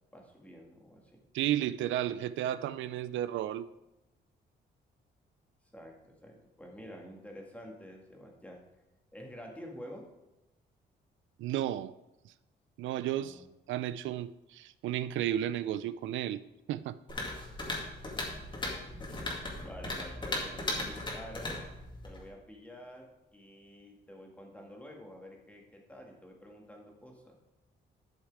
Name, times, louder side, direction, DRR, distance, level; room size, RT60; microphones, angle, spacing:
voice 1, 0.1-1.2 5.7-8.6 9.1-10.1 13.2-13.5 17.9-18.0 19.1-21.6 22.0-27.3, equal, 5° left, 0 dB, 2.0 m, -49 dB
voice 2, 1.3-3.7 11.4-11.9 12.3-12.4 12.8-13.4 13.7-17.0, right 12 dB, 90° right, 15 dB, 0.4 m, -33 dB
sound 1, 17.1-22.3, left 2 dB, 25° left, 2.2 m, -37 dB
12.0 x 6.5 x 4.7 m, 0.96 s
cardioid pair, 125°, 19 cm